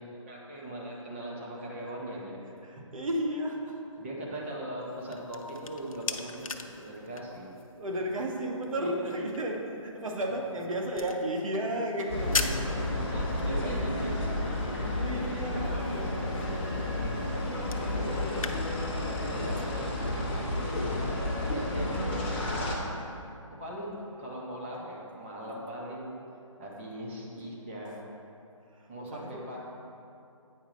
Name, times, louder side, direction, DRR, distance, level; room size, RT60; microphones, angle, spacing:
voice 1, 0.3-2.4 2.8-2.9 4.0-7.5 8.8-9.1 10.2-10.4 12.9-14.4 19.2-22.9 23.6-26.2 26.6-28.0 28.9-29.6, right 1 dB, 20° right, -4 dB, 1.0 m, -40 dB
voice 2, 2.6-3.8 4.5-4.6 7.8-12.7 13.2-13.8 14.7-16.6 17.0-18.5 21.1-21.3 25.4-25.5 28.7-29.4, right 1 dB, 75° right, 0 dB, 1.4 m, -35 dB
sound 1, 4.8-18.6, left 4 dB, 85° left, 0.6 m, -41 dB
sound 2, 12.1-22.8, left 1 dB, 20° left, 1.0 m, -31 dB
9.0 x 4.6 x 5.0 m, 2.7 s
hypercardioid pair, 170°, 17 cm